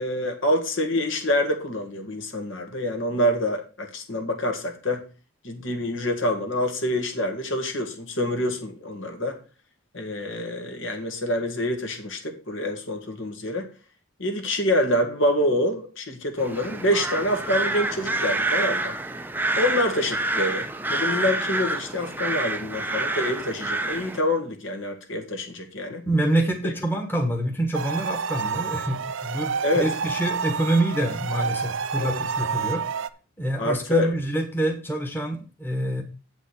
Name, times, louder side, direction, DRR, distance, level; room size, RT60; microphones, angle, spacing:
voice 1, 0.0-5.1 5.4-9.4 9.9-13.7 14.2-19.0 19.6-26.0 26.6-26.7 29.6-29.9 32.0-32.2 33.6-34.1, left 1 dB, 60° left, 1.8 m, -26 dB
sound 1, 16.4-24.2, right 2 dB, 10° right, 0.6 m, -28 dB
voice 2, 26.0-32.8 33.4-36.0, right 1 dB, 10° left, 1.4 m, -26 dB
sound 2, 27.7-33.1, right 6 dB, 60° right, 0.5 m, -29 dB
8.3 x 5.3 x 6.5 m
head